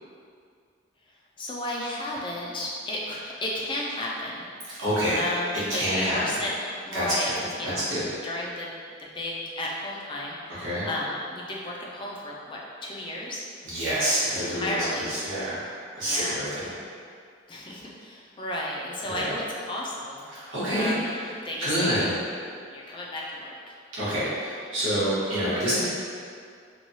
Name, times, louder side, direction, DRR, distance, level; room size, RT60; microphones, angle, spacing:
voice 1, 1.4-4.5 5.1-8.7 9.0-13.4 14.3-15.1 15.4-15.6 16.0-16.4 17.5-20.3 20.8-21.2 21.4-22.1 22.7-23.7, left 1 dB, 25° left, -3 dB, 0.3 m, -33 dB
voice 2, 4.7-5.2 5.7-6.2 6.9-8.1 10.6-10.9 13.6-16.7 19.0-19.4 20.3-21.3 21.6-22.2 23.9-25.9, equal, 85° right, -11 dB, 1.1 m, -27 dB
3.0 x 2.2 x 2.7 m, 2.2 s
head